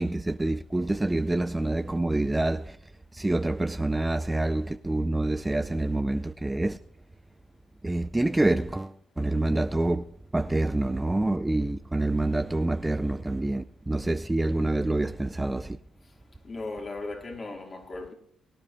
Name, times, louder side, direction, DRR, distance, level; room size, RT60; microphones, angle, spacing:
voice 1, 0.0-6.8 7.8-15.8, right 2 dB, 15° right, 0.4 m, -27 dB
voice 2, 16.4-18.1, left 2 dB, 35° left, 2.4 m, -37 dB
22.5 x 10.0 x 2.6 m
cardioid pair, 90°, 0 cm